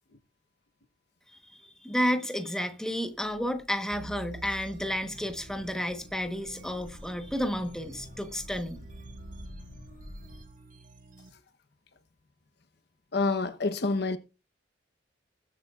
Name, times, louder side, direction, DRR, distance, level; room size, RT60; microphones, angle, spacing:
voice 1, 1.5-8.8, equal, 5° left, 1.1 m, -31 dB
sound 1, 3.1-10.4, equal, 80° left, 2.6 m, -49 dB
sound 2, 3.9-11.3, right 1 dB, 45° right, 1.5 m, -49 dB
voice 2, 13.1-14.2, left 3 dB, 60° left, 1.0 m, -27 dB
21.0 x 8.1 x 2.4 m
head